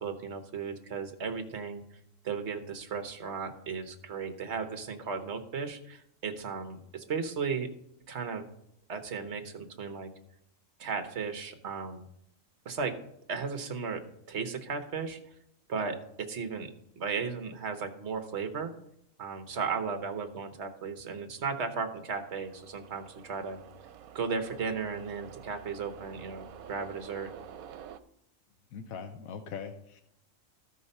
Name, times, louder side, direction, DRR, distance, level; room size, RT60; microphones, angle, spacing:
voice 1, 0.0-1.8 2.2-7.7 8.1-8.4 8.9-10.1 10.8-12.0 12.6-12.9 13.3-15.2 15.7-18.7 19.2-23.6 24.1-27.3, right 5 dB, 55° right, 8 dB, 1.3 m, -35 dB
sound 1, 21.9-28.0, right 9 dB, 90° right, 1.1 m, -49 dB
voice 2, 28.7-30.0, left 6 dB, 90° left, 7 dB, 1.2 m, -41 dB
13.0 x 5.5 x 5.4 m, 0.76 s
omnidirectional pair, 1.4 m